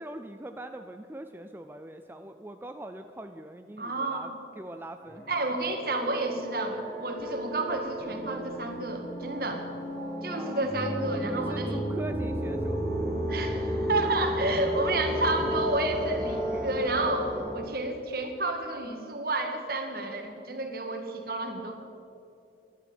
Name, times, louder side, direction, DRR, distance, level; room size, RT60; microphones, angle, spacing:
voice 1, 0.0-4.3 4.6-5.2 10.3-10.6 11.3-12.8, right 1 dB, 10° right, 6 dB, 0.4 m, -42 dB
voice 2, 3.8-4.3 5.3-9.7 10.2-11.9 13.3-21.8, right 2 dB, 55° right, 4 dB, 1.9 m, -30 dB
sound 1, 5.0-17.6, equal, 15° left, 3.0 m, -33 dB
13.5 x 11.0 x 8.9 m, 2.6 s
head